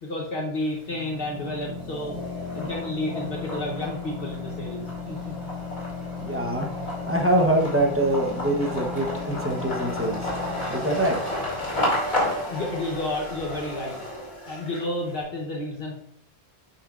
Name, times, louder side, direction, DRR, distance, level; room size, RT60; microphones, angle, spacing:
voice 1, 0.0-2.2 2.5-5.3 11.8-13.9 14.5-15.9, left 2 dB, 60° left, -2 dB, 1.2 m, -31 dB
sound 1, 0.6-1.2 1.6-15.1, left 1 dB, 45° left, 2.6 m, -32 dB
sound 2, 0.9-12.4, left 5 dB, 35° right, 0.3 m, -37 dB
voice 2, 6.2-6.7 7.1-10.3 10.7-11.2, right 1 dB, 15° right, 0 dB, 0.8 m, -24 dB
9.0 x 5.5 x 2.4 m, 0.66 s
omnidirectional pair, 1.1 m